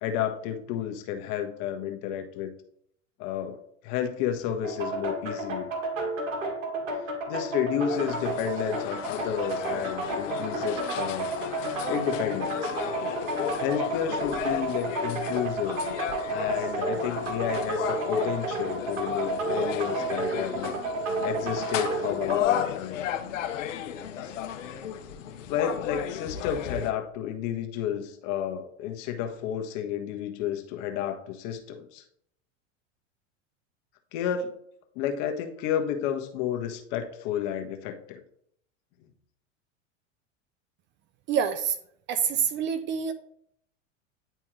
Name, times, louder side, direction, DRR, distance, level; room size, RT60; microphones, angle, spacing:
voice 1, 0.0-2.5 3.2-3.6 3.8-5.7 7.3-11.3 11.9-12.7 13.5-15.8 16.3-20.8 21.2-23.0 25.5-32.0 34.1-34.5 34.9-38.2, left 9 dB, 50° left, 5 dB, 1.1 m, -31 dB
sound 1, 4.6-22.4, right 2 dB, 75° right, 1.7 m, -31 dB
sound 2, 7.9-26.9, left 8 dB, 75° left, 0.8 m, -34 dB
voice 2, 41.3-41.8 42.1-43.1, right 7 dB, 30° right, 12 dB, 0.4 m, -26 dB
10.0 x 3.4 x 3.1 m, 0.69 s
hypercardioid pair, 90°, 38 cm